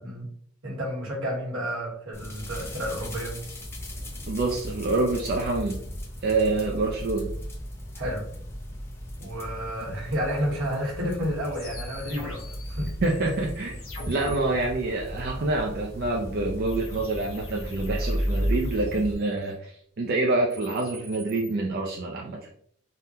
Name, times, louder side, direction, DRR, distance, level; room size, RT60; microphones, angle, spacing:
voice 1, 0.6-3.4 7.9-8.3 9.2-12.9, equal, 75° right, 1.2 m, -31 dB
sound 1, 2.1-19.1, equal, 10° left, 0.5 m, -35 dB
voice 2, 4.3-5.8 6.2-7.3 9.9-10.0 13.0-13.8 14.1-22.4, right 2 dB, 45° right, 0.4 m, -27 dB
sound 2, 11.5-14.4 16.7-19.5 20.3-21.5, left 2 dB, 70° left, 1.0 m, -44 dB
3.5 x 2.1 x 2.7 m
head